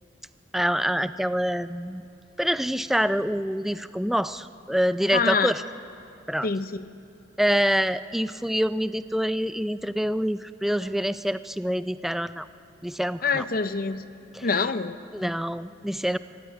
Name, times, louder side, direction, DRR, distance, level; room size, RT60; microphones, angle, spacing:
voice 1, 0.5-2.0 2.4-5.6 6.3-6.5 7.4-12.5 12.8-13.4 14.3-14.5 15.1-16.2, equal, ahead, 13 dB, 0.4 m, -26 dB
voice 2, 5.1-5.5 6.4-6.8 13.2-14.0 14.4-15.0, left 5 dB, 55° left, 12 dB, 0.7 m, -25 dB
23.5 x 15.5 x 9.4 m, 2.7 s
head